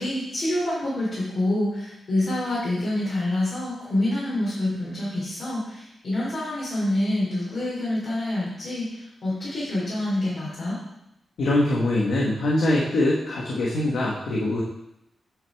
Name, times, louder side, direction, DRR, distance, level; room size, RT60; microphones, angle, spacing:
voice 1, 0.0-10.8, left 1 dB, 55° left, -8 dB, 2.8 m, -27 dB
voice 2, 11.4-14.6, left 1 dB, 90° left, -4 dB, 1.3 m, -23 dB
8.7 x 6.2 x 3.5 m, 0.85 s
wide cardioid pair, 135°, 0 cm